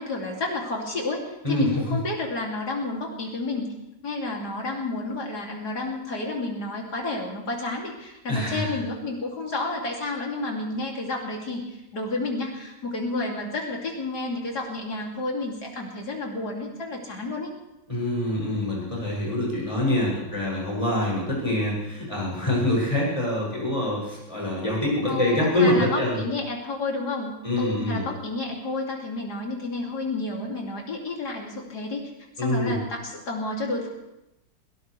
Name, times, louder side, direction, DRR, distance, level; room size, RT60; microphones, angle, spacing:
voice 1, 0.0-3.7 4.0-17.5 25.1-32.1 32.4-33.9, left 2 dB, 60° left, -1 dB, 3.5 m, -30 dB
voice 2, 1.4-2.0 8.3-8.8 17.9-26.2 27.4-28.0 32.4-32.8, left 1 dB, 20° left, -4 dB, 7.5 m, -25 dB
21.0 x 18.0 x 3.4 m, 0.92 s
omnidirectional pair, 1.9 m